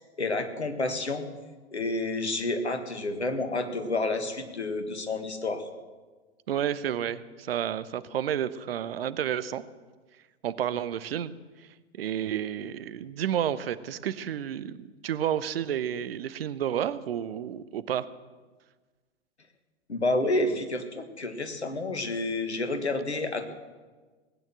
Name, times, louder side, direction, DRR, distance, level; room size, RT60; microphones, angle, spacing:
voice 1, 0.2-1.3 1.7-5.6 19.9-23.5, left 2 dB, 80° left, 8 dB, 1.7 m, -29 dB
voice 2, 6.5-9.6 10.4-11.3 11.6-11.7 11.9-18.1, right 10 dB, 60° right, 16 dB, 0.8 m, -31 dB
19.0 x 9.1 x 7.4 m, 1.4 s
figure-of-eight pair, 95°, 33 cm